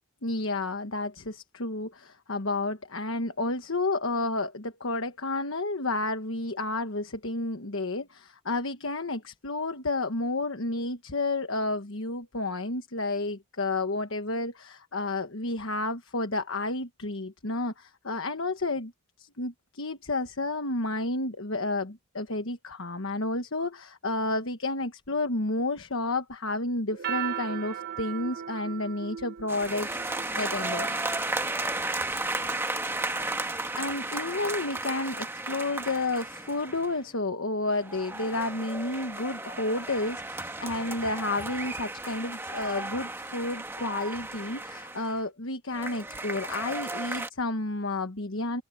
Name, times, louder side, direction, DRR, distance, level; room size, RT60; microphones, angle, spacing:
voice 1, 0.2-18.9 19.2-31.0 33.8-48.6, left 2 dB, 60° left, 1.3 m, -31 dB
sound 1, 26.9-31.7, right 10 dB, 45° right, 1.2 m, -37 dB
sound 2, 29.5-37.0 37.7-45.2 45.7-47.3, right 2 dB, 10° right, 1.3 m, -34 dB
head